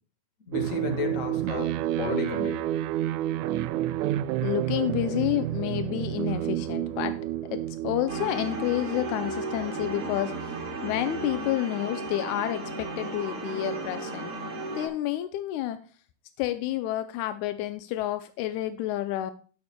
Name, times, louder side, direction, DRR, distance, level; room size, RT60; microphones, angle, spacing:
voice 1, 0.5-2.6, left 4 dB, 50° left, 4 dB, 0.9 m, -32 dB
sound 1, 0.5-11.5, right 13 dB, 85° right, 1.7 m, -31 dB
voice 2, 4.4-7.2 7.4-10.5 10.8-14.3 14.7-15.8 16.4-19.3, left 13 dB, 80° left, 10 dB, 1.7 m, -29 dB
sound 2, 8.1-14.9, right 2 dB, 50° right, 3.7 m, -35 dB
18.5 x 6.9 x 2.2 m, 0.39 s
omnidirectional pair, 3.9 m